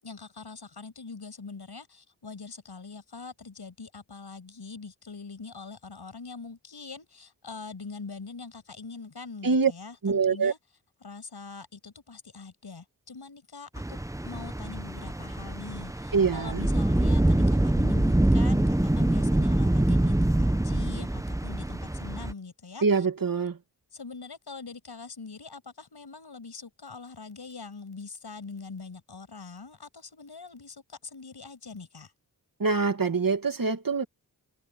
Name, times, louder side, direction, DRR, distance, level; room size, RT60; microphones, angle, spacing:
voice 1, 0.0-10.6 11.0-23.1 23.9-32.1, left 4 dB, 75° left, 6.9 m, -43 dB
voice 2, 10.0-10.5 16.1-16.7 22.8-23.6 32.6-34.0, right 5 dB, 55° right, 2.1 m, -24 dB
sound 1, 13.7-22.3, right 1 dB, 10° right, 0.9 m, -25 dB
open air
cardioid pair, 55°, 40 cm